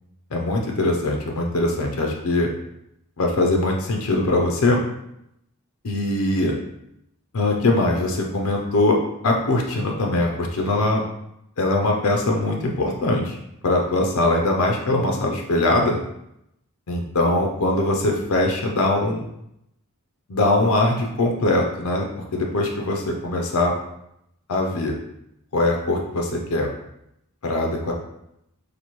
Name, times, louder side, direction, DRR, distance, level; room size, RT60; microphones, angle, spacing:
voice 1, 0.3-2.5 3.2-4.8 5.8-6.5 7.3-11.0 11.6-13.4 13.6-16.0 16.9-19.2 20.3-22.1 22.3-23.7 24.5-25.0 25.5-26.7 27.4-27.9, left 2 dB, 80° left, 1 dB, 0.6 m, -21 dB
4.2 x 2.6 x 3.0 m, 0.80 s
head